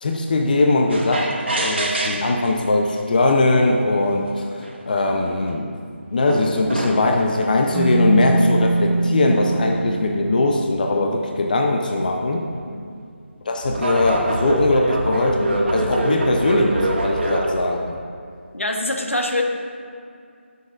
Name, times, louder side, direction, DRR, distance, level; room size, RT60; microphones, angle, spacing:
voice 1, 0.0-1.3 1.6-5.8 6.1-12.5 13.5-18.0, left 2 dB, 40° left, 2 dB, 0.7 m, -20 dB
sound 1, 0.9-2.5 3.4-3.5 4.3-4.4 4.6-5.5 6.3-7.4 8.3-9.8 12.4-12.6 13.6-17.6, right 1 dB, 60° right, 1.6 m, -25 dB
Keyboard (musical), 7.7-11.0, right 2 dB, ahead, 0.7 m, -22 dB
voice 2, 12.7-13.0 18.5-19.4, left 1 dB, 85° left, 2 dB, 1.2 m, -24 dB
17.5 x 6.7 x 2.5 m, 2.3 s
figure-of-eight pair, 160°, 7 cm